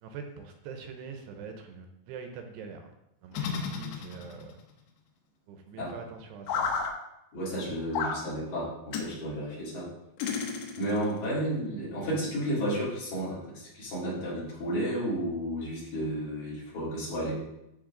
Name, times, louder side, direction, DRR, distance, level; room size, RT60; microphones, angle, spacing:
voice 1, 0.0-2.9 3.2-4.6 5.5-6.8, right 5 dB, 75° right, 5 dB, 2.7 m, -43 dB
sound 1, 3.3-4.5 6.5-6.9 7.9-8.2 8.9-9.1 10.2-11.1, left 5 dB, 80° left, 3.2 m, -32 dB
voice 2, 7.3-9.9 10.8-17.3, right 1 dB, 45° left, -8 dB, 4.5 m, -32 dB
13.5 x 4.7 x 3.8 m, 0.87 s
omnidirectional pair, 5.2 m